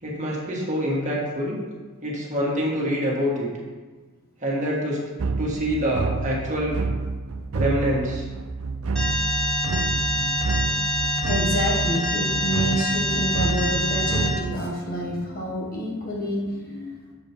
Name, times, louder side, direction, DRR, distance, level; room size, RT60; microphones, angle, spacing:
voice 1, 0.0-1.6 2.0-3.5 4.4-5.0 5.4-6.7 7.5-8.2, equal, 35° right, -4 dB, 1.7 m, -25 dB
sound 1, 5.2-14.6, right 4 dB, 70° right, 0.5 m, -29 dB
Alarm, 9.0-14.3, left 1 dB, 5° left, 1.4 m, -25 dB
voice 2, 11.2-17.1, equal, 45° left, -3 dB, 1.6 m, -28 dB
7.2 x 5.0 x 4.5 m, 1.4 s
head